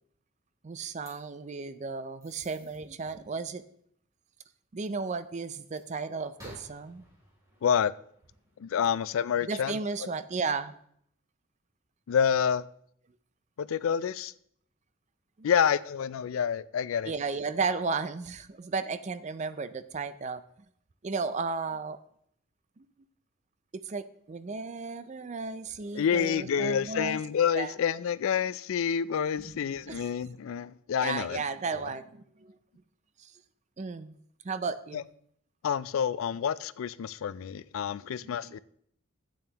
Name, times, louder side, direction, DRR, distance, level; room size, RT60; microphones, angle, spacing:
voice 1, 0.6-3.6 4.7-7.0 9.4-10.7 15.4-15.5 17.1-20.4 21.0-22.0 22.8-22.9 23.8-27.2 27.5-27.7 29.4-29.6 29.9-30.1 31.0-32.6 33.2-33.3 33.8-34.2 34.4-35.1 38.1-38.6, right 4 dB, 35° right, 12 dB, 0.4 m, -34 dB
sound 1, 0.8-1.1 2.2-2.8 5.4-5.9 6.4-8.6, equal, 15° right, 3.1 m, -53 dB
voice 2, 7.6-7.9 8.6-9.8 12.1-12.6 13.6-14.3 15.4-17.1 26.0-31.4 34.9-35.0 35.6-38.6, left 7 dB, 75° left, 18 dB, 0.3 m, -28 dB
12.5 x 8.7 x 2.9 m, 0.68 s
head